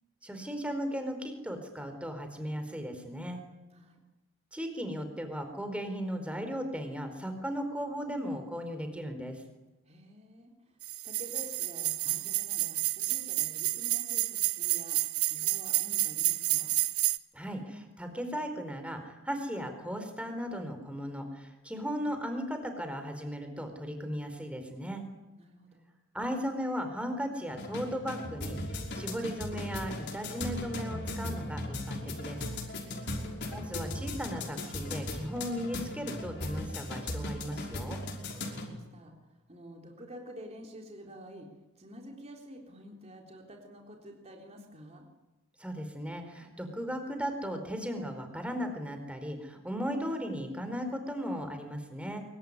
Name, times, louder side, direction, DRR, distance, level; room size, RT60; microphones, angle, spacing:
voice 1, 0.2-3.4 4.5-9.4 17.3-25.0 26.1-32.4 33.5-38.0 45.6-52.2, equal, 5° right, 6 dB, 4.5 m, -36 dB
voice 2, 9.9-10.5 11.0-16.7 25.4-25.9 32.8-33.3 38.5-41.5 41.8-45.1, equal, 30° right, 1 dB, 3.8 m, -49 dB
sound 1, 10.8-17.2, right 16 dB, 85° right, 1.0 m, -30 dB
sound 2, 27.5-38.7, left 1 dB, 50° left, 5.6 m, -37 dB
25.0 x 23.5 x 9.9 m, 1.0 s
head